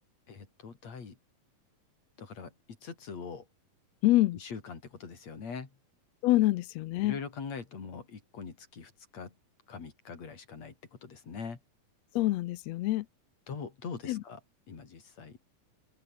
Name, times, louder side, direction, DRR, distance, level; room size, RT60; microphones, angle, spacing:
voice 1, 0.3-1.2 2.2-2.5 2.8-3.4 4.4-5.7 7.0-9.3 9.7-10.7 11.0-11.6 13.5-14.4 14.7-15.4, left 5 dB, 55° left, 5.0 m, -42 dB
voice 2, 4.0-4.4 6.2-7.2 12.1-13.1 14.1-14.2, left 17 dB, 75° left, 1.6 m, -26 dB
open air
omnidirectional pair, 3.6 m